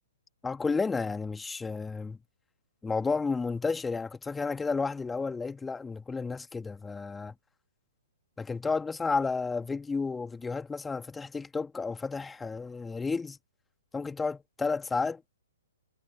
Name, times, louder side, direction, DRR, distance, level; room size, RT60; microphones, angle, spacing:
voice 1, 0.4-2.2 2.8-7.3 8.4-13.4 13.9-15.2, left 4 dB, 10° left, 2.6 m, -32 dB
figure-of-eight pair, 120°, 0 cm